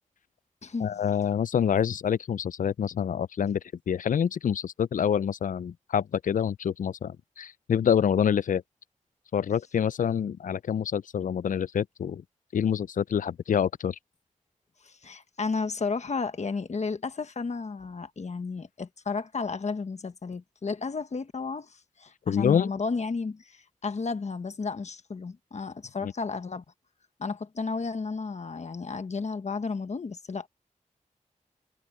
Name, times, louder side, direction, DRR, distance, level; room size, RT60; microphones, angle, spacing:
voice 1, 0.8-3.6 3.9-8.6 9.3-12.2 12.5-14.0 22.3-22.7 26.0-26.1, left 8 dB, 90° left, 0.4 m, -26 dB
voice 2, 14.8-26.6 27.2-30.5, left 4 dB, 60° left, 1.2 m, -33 dB
wide cardioid pair, 115°, 13 cm